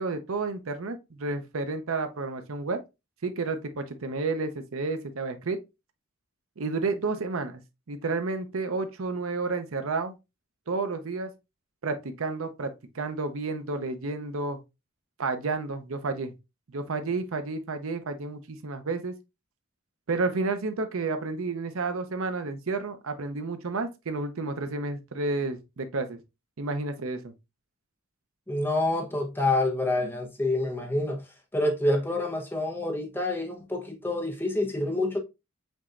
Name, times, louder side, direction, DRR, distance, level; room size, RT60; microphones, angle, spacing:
voice 1, 0.0-2.8 3.2-5.6 6.6-7.6 7.9-10.2 10.7-11.3 11.8-14.6 15.2-16.3 16.7-19.1 20.1-26.2 26.6-27.3, right 3 dB, 70° right, 0.7 m, -31 dB
voice 2, 28.5-31.2 31.5-35.2, left 2 dB, 10° left, 0.9 m, -27 dB
5.4 x 3.0 x 2.4 m
head